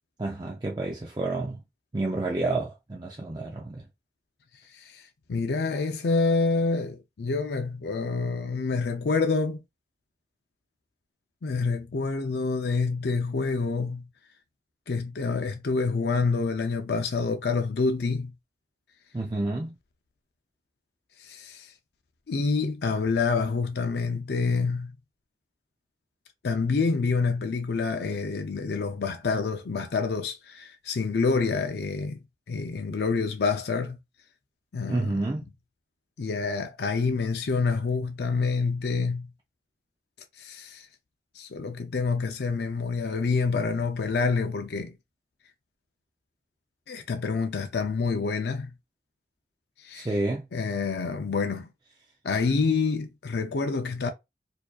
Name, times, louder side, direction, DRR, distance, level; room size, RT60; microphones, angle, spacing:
voice 1, 0.2-1.6 1.9-3.8 19.1-19.7 34.9-35.4 49.9-50.5, right 2 dB, 25° right, 0.4 m, -29 dB
voice 2, 5.3-9.6 11.4-14.0 14.9-18.3 21.2-21.7 22.3-24.9 26.4-32.2 32.5-34.0 34.7-35.1 36.2-39.3 40.4-40.9 41.4-44.9 46.9-48.7 49.8-50.1 50.5-51.7 52.2-54.1, left 4 dB, 65° left, 0.4 m, -27 dB
4.5 x 2.7 x 2.3 m
head